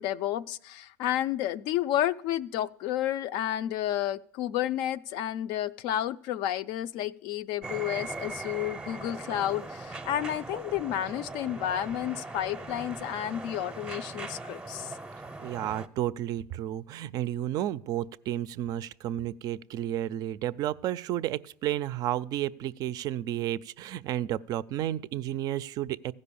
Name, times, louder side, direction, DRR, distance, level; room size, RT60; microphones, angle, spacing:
voice 1, 0.0-15.0, left 12 dB, 65° left, 14 dB, 0.4 m, -31 dB
sound 1, 7.6-15.9, right 3 dB, 10° right, 0.6 m, -40 dB
voice 2, 15.4-26.1, right 12 dB, 50° right, 16 dB, 0.4 m, -32 dB
15.0 x 5.3 x 6.9 m, 0.64 s
supercardioid pair, 110°, 8 cm